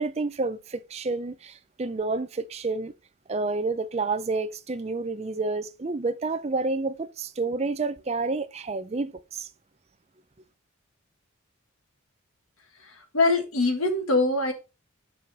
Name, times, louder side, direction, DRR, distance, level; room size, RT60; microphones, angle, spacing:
voice 1, 0.0-2.9 3.3-9.5, right 3 dB, 30° right, 0.5 m, -29 dB
voice 2, 12.8-14.5, left 2 dB, 80° left, 1.8 m, -23 dB
8.0 x 4.8 x 4.2 m
head